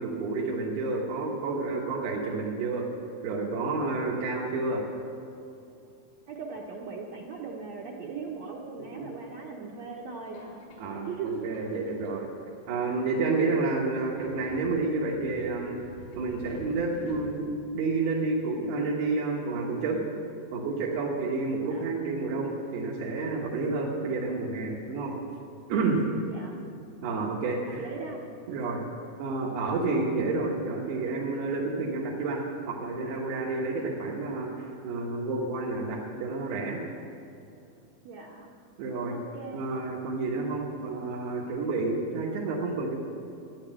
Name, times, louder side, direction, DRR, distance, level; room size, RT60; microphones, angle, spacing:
voice 1, 0.0-2.9 3.2-4.8 8.9-9.1 10.8-12.3 12.7-15.8 16.1-20.0 20.5-25.2 25.7-26.0 27.0-27.9 28.5-28.8 29.2-36.8 38.8-39.2 39.5-43.0, right 3 dB, 85° right, -4 dB, 3.4 m, -30 dB
voice 2, 6.3-10.5 11.0-11.6 21.7-21.8 26.2-26.5 27.8-28.2 38.0-38.5 39.1-39.6, right 5 dB, 70° right, -1 dB, 1.7 m, -38 dB
Subway metro underground, 10.3-17.8, left 1 dB, 85° left, 4.3 m, -50 dB
13.0 x 10.0 x 7.6 m, 2.7 s
omnidirectional pair, 4.4 m